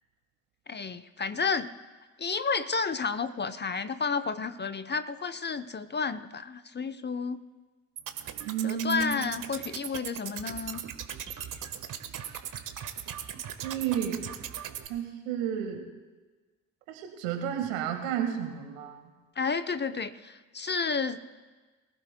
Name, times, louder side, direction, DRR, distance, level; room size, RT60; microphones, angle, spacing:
voice 1, 0.7-1.7 2.2-7.4 8.6-10.8 19.4-21.2, left 5 dB, 25° left, 11 dB, 0.8 m, -31 dB
sound 1, 8.0-14.9, right 9 dB, 50° right, 1.4 m, -39 dB
voice 2, 8.5-9.2 13.6-14.2 14.9-15.8 16.9-19.0, right 8 dB, 80° right, 4 dB, 1.9 m, -31 dB
24.0 x 15.5 x 2.3 m, 1.3 s
hypercardioid pair, 50°, 40 cm